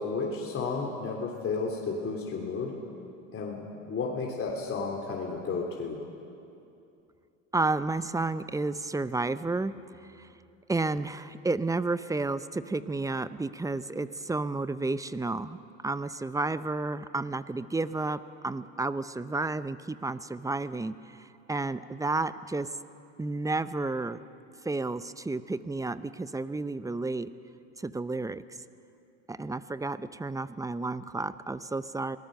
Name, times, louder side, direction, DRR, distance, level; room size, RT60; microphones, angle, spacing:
voice 1, 0.0-2.7 3.3-6.0, left 4 dB, 35° left, -1 dB, 3.4 m, -32 dB
voice 2, 7.5-9.7 10.2-10.3 10.7-15.6 15.8-21.2 21.5-22.7 23.2-24.2 24.6-27.3 27.8-28.4 29.3-32.2, right 3 dB, 10° right, 14 dB, 0.7 m, -31 dB
25.5 x 19.0 x 6.7 m, 2.6 s
hypercardioid pair, 85°, 37 cm